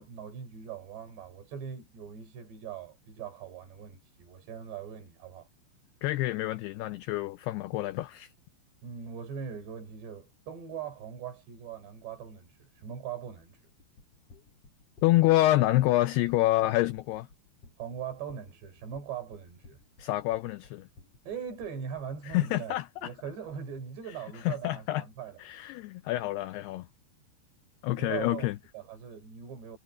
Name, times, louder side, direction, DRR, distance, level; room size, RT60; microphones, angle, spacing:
voice 1, 0.0-5.5 8.8-13.6 17.8-19.8 21.3-25.4 27.9-28.5 28.7-29.8, right 7 dB, 65° right, 6.3 m, -41 dB
voice 2, 6.0-8.3 15.0-17.3 20.0-20.9 22.3-23.1 24.4-25.0 25.4-26.9 27.8-28.6, left 16 dB, 80° left, 2.4 m, -27 dB
sound 1, 13.8-22.4, left 3 dB, 35° left, 4.8 m, -56 dB
omnidirectional pair, 5.3 m